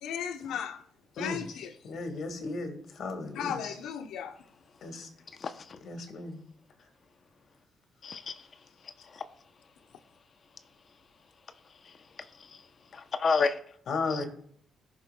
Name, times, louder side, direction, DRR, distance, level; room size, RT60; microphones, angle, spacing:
voice 1, 0.0-0.8 1.2-1.7 3.3-4.4, left 8 dB, 85° left, 0.8 m, -35 dB
voice 2, 1.8-3.7 4.8-5.1 5.8-6.4 13.9-14.3, left 3 dB, 65° left, 2.0 m, -35 dB
voice 3, 5.4-5.8 8.0-8.4 9.1-9.2 12.9-13.6 14.1-14.2, left 4 dB, 45° left, 0.7 m, -29 dB
15.0 x 6.5 x 2.3 m
cardioid pair, 90°, 0 cm